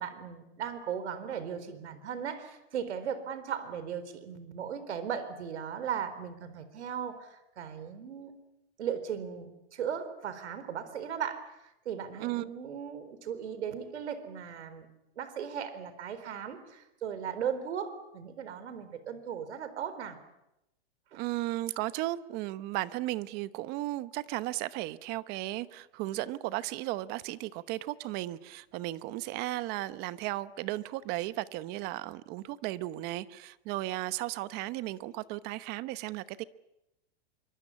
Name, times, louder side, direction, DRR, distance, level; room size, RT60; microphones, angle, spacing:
voice 1, 0.0-8.3 8.8-14.9 15.2-20.2 21.1-21.2, right 8 dB, 80° right, 12 dB, 4.2 m, -37 dB
voice 2, 21.2-36.4, right 17 dB, 30° right, 16 dB, 0.9 m, -35 dB
25.5 x 24.5 x 8.5 m, 0.87 s
supercardioid pair, 155°, 33 cm